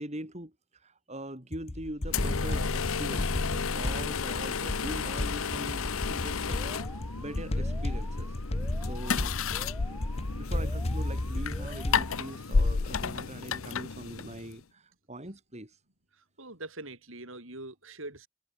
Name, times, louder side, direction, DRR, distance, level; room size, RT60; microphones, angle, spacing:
voice 1, 0.0-6.6 7.2-8.4 8.9-9.3 9.8-15.8, right 1 dB, 30° right, 4.8 m, -42 dB
sound 1, 1.5-12.2, left 1 dB, 30° left, 0.8 m, -34 dB
sound 2, 2.1-14.6, left 5 dB, 70° left, 0.8 m, -32 dB
Alarm, 6.5-12.5, right 1 dB, 10° right, 3.9 m, -48 dB
voice 2, 16.2-18.3, right 2 dB, 60° right, 7.3 m, -43 dB
head